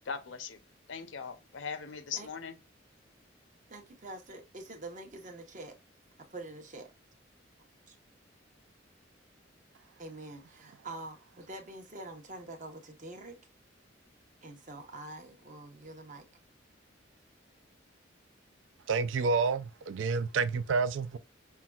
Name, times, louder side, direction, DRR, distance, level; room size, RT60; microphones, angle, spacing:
voice 1, 0.1-0.6 0.9-2.6, left 6 dB, 85° left, 0.6 m, -39 dB
voice 2, 3.7-5.7 6.3-6.9 7.9-8.0 10.0-13.4 14.4-16.3, right 2 dB, 40° right, 0.8 m, -45 dB
voice 3, 18.9-21.2, right 4 dB, 85° right, 0.4 m, -29 dB
5.6 x 2.2 x 2.3 m
head